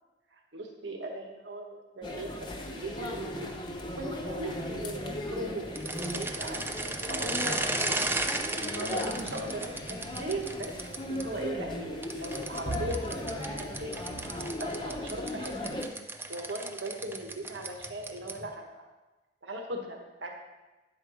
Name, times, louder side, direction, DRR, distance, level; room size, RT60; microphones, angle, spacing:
voice 1, 0.5-2.3 2.6-3.5 4.0-5.7 6.0-6.6 7.1-8.1 8.5-10.7 11.1-14.0 14.6-15.7 16.3-18.9 19.4-20.3, right 1 dB, 80° right, 2 dB, 1.4 m, -38 dB
sound 1, 2.0-15.8, left 1 dB, 25° left, 0.9 m, -37 dB
sound 2, 5.7-11.2 12.0-18.5, right 2 dB, 10° right, 0.5 m, -35 dB
10.0 x 4.5 x 6.3 m, 1.1 s
head